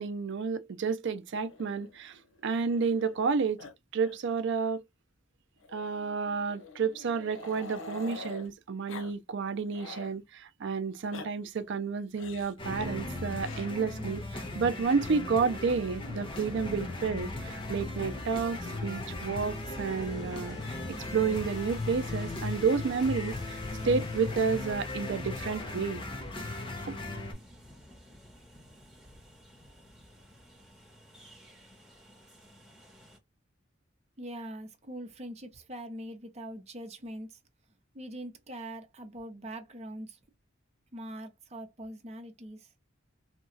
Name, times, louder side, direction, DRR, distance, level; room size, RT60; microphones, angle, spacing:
voice 1, 0.0-3.6 3.9-4.8 5.7-26.0, right 5 dB, 60° right, 0.4 m, -31 dB
Growling, 1.4-3.3 3.6-3.7 4.0-4.2 4.5-4.6 5.6-8.5 8.9-9.1 9.5-10.2 10.9-11.3 12.2-12.6 13.4-13.7 14.8-15.5, left 3 dB, 70° left, 0.6 m, -46 dB
sound 1, 12.6-27.3, left 2 dB, 25° left, 0.7 m, -37 dB
Train, 14.2-33.2, equal, ahead, 1.1 m, -49 dB
voice 2, 34.2-37.4 37.9-40.2 40.9-42.7, right 1 dB, 35° right, 0.7 m, -42 dB
2.8 x 2.3 x 2.6 m
head